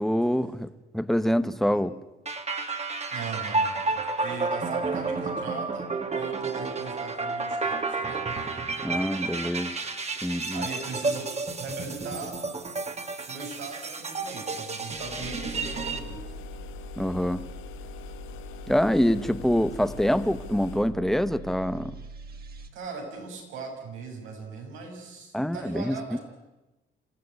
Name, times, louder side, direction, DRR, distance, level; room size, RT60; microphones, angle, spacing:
voice 1, 0.0-2.0 8.8-9.8 10.2-10.7 17.0-17.4 18.7-21.9 25.3-26.2, equal, ahead, 12 dB, 1.3 m, -25 dB
sound 1, 2.3-16.0, right 3 dB, 35° right, 2.5 m, -31 dB
voice 2, 3.1-8.2 10.5-11.3 11.6-12.3 13.3-16.4 22.7-26.2, right 4 dB, 90° right, 1 dB, 7.1 m, -39 dB
sound 2, 14.9-20.9, left 11 dB, 90° left, 1.3 m, -44 dB
sound 3, 15.2-22.7, right 3 dB, 50° right, 3.0 m, -43 dB
27.5 x 15.5 x 9.7 m, 1.1 s
cardioid pair, 90°, 20 cm